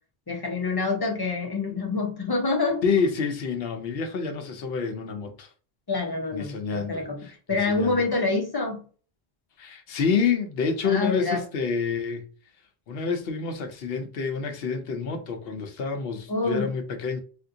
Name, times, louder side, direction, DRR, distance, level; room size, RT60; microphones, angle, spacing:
voice 1, 0.3-2.8 5.9-7.2 7.5-8.8 10.8-11.4 16.3-16.7, left 3 dB, 25° left, 0.7 m, -26 dB
voice 2, 2.8-5.5 6.3-7.0 7.5-8.0 9.6-12.3 12.9-17.2, left 5 dB, 70° left, 0.8 m, -28 dB
3.6 x 2.5 x 2.6 m
omnidirectional pair, 1.0 m